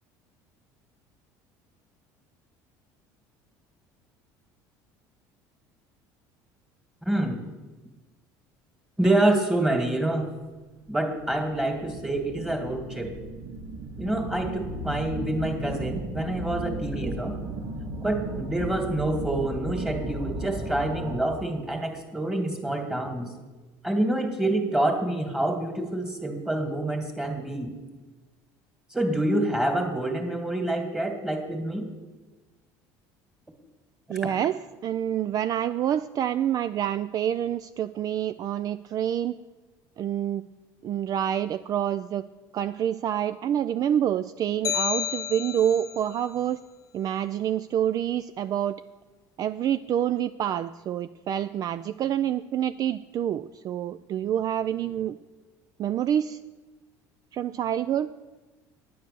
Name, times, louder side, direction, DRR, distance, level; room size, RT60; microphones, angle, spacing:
voice 1, 7.1-7.4 9.0-10.3 10.9-13.1 14.0-17.4 18.0-23.3 23.8-27.7 28.9-31.9, right 1 dB, 5° right, 5 dB, 2.1 m, -27 dB
sound 1, 10.8-21.5, right 2 dB, 80° right, 1.8 m, -36 dB
voice 2, 34.1-39.3 40.0-40.4 40.8-42.3 42.5-46.6 46.9-48.8 49.4-55.2 55.8-56.4 57.3-58.1, right 10 dB, 45° right, 12 dB, 0.4 m, -27 dB
sound 2, 44.6-46.0, left 8 dB, 40° left, 0.7 m, -30 dB
9.4 x 9.3 x 6.9 m, 1.2 s
supercardioid pair, 95°, 9 cm